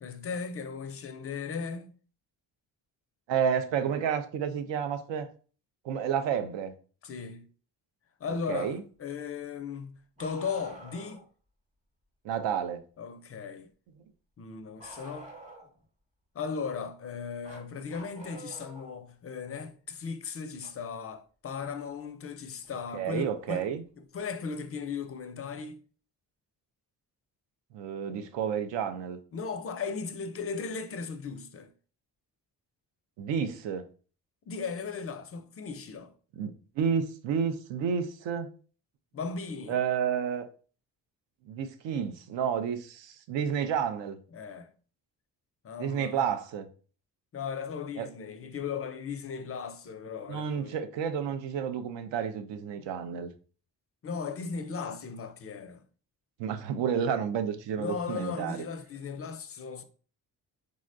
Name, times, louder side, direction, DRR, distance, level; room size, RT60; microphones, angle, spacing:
voice 1, 0.0-1.9 7.0-7.5 8.2-11.2 13.0-13.7 14.4-15.3 16.3-23.7 24.0-25.8 29.3-31.7 34.5-36.1 39.1-39.8 44.3-44.7 45.6-46.2 47.3-50.8 54.0-55.8 57.8-59.8, left 5 dB, 35° left, 0.4 m, -37 dB
voice 2, 3.3-5.3 5.8-6.7 8.5-8.8 12.2-12.8 22.9-23.8 27.7-29.2 33.2-33.9 36.3-38.5 39.7-40.5 41.5-44.2 45.8-46.7 48.0-48.1 50.3-53.3 56.4-58.6, right 7 dB, 75° right, 0.5 m, -30 dB
Bark, 10.2-11.3 14.8-15.8 17.4-18.9 20.6-20.7 22.6-22.7 23.8-23.9, right 2 dB, 15° right, 0.9 m, -48 dB
3.6 x 2.1 x 2.5 m
supercardioid pair, 55°, 44 cm